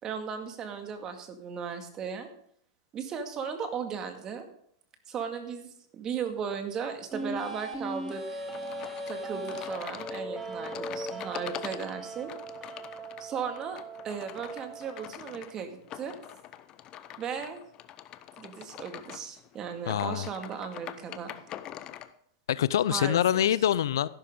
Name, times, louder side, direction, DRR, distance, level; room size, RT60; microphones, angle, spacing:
voice 1, 0.0-2.3 2.9-4.4 5.1-8.4 9.1-12.3 13.2-13.8 14.0-16.1 17.2-17.6 18.4-21.3 22.9-23.5, right 7 dB, 30° right, 6 dB, 2.1 m, -36 dB
sound 1, 7.1-15.1, right 1 dB, 10° right, 2.1 m, -39 dB
sound 2, 8.5-22.1, left 12 dB, 35° left, 0.8 m, -44 dB
voice 2, 19.9-20.3 22.5-24.1, left 10 dB, 75° left, 19 dB, 0.5 m, -25 dB
13.0 x 11.5 x 3.7 m, 0.66 s
hypercardioid pair, 115°, 2 cm